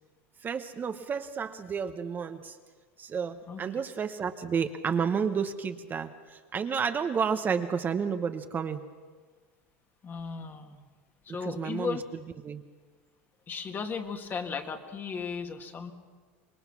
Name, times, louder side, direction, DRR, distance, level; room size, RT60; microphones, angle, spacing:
voice 1, 0.4-2.6 3.0-8.8 11.4-12.0 12.4-12.6, right 6 dB, 30° right, 7 dB, 1.1 m, -31 dB
voice 2, 10.0-10.8 11.3-12.0 13.5-15.9, left 5 dB, 30° left, 6 dB, 2.0 m, -36 dB
25.5 x 21.0 x 6.1 m, 1.5 s
supercardioid pair, 110°, 7 cm